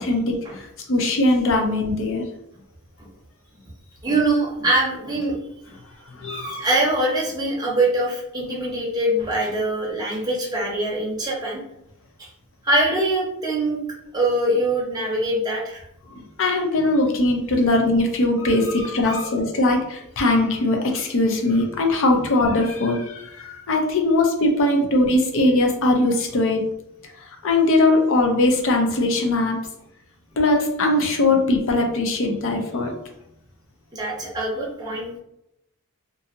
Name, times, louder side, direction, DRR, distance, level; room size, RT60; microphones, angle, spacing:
voice 1, 0.0-2.3 6.2-6.6 16.1-26.6 27.4-29.6 30.4-32.9, left 2 dB, 65° left, 3 dB, 0.5 m, -20 dB
voice 2, 4.0-5.4 5.7-5.8 6.3-11.6 12.2-12.3 12.6-13.8 14.1-15.8 18.4-19.3 33.9-35.2, right 1 dB, 20° right, -3 dB, 0.7 m, -23 dB
2.6 x 2.6 x 2.5 m, 0.80 s
head